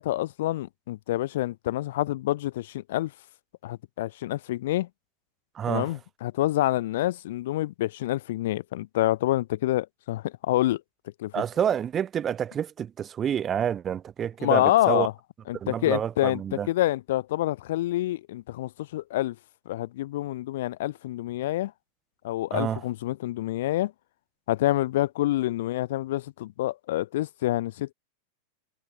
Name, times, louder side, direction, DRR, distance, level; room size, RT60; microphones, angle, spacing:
voice 1, 0.0-3.1 3.6-4.9 5.7-10.8 11.2-11.3 14.4-15.1 15.5-19.4 19.7-21.7 22.2-23.9 24.5-27.9, left 15 dB, 55° left, 3.6 m, -27 dB
voice 2, 5.5-5.9 11.3-15.1 15.5-16.7 22.5-22.8, right 9 dB, 25° right, 5.7 m, -28 dB
figure-of-eight pair, 90°, 0 cm